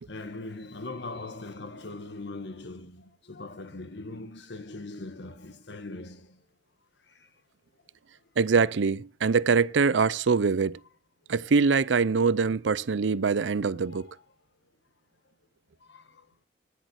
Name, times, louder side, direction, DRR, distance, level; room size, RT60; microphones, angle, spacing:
voice 1, 0.1-6.3 13.8-14.2 15.9-16.0, left 2 dB, 65° left, 1.4 m, -40 dB
voice 2, 8.4-10.8 11.3-14.1, right 5 dB, 75° right, 0.5 m, -24 dB
10.0 x 8.4 x 8.0 m
head